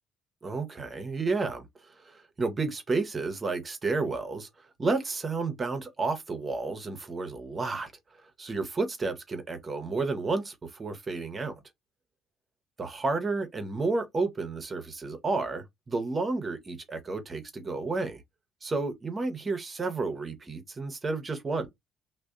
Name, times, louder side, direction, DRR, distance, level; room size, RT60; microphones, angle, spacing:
voice 1, 0.4-7.9 8.4-11.5 12.8-18.2 18.6-21.7, right 3 dB, 35° right, 0.7 m, -31 dB
2.6 x 2.1 x 2.3 m
hypercardioid pair, 55°, 0 cm